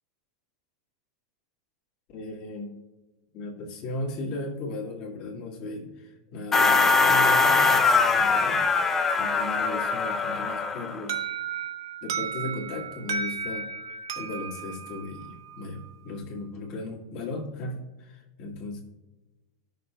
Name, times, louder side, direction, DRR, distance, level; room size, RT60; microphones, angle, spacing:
voice 1, 2.1-2.7 3.3-8.7 9.1-11.2 12.0-13.7 14.1-18.8, left 2 dB, 45° left, -3 dB, 1.8 m, -36 dB
sound 1, 6.5-11.0, left 4 dB, 15° left, 0.4 m, -22 dB
Alarm, 11.1-15.9, right 6 dB, 85° right, 0.7 m, -34 dB
13.5 x 6.8 x 2.2 m, 1.1 s
supercardioid pair, 145°, 2 cm